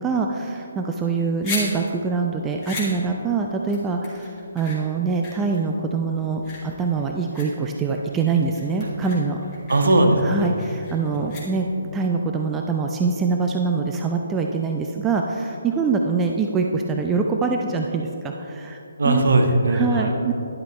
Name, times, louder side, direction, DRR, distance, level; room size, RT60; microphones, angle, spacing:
voice 1, 0.0-9.4 10.2-19.2 19.7-20.3, right 4 dB, 10° right, 2 dB, 0.5 m, -24 dB
sound 1, 1.0-11.9, left 2 dB, 10° left, 2.6 m, -37 dB
voice 2, 9.7-10.6 19.0-20.1, right 2 dB, 60° right, 3 dB, 1.3 m, -19 dB
12.0 x 11.0 x 3.2 m, 2.8 s
figure-of-eight pair, 140°, 0 cm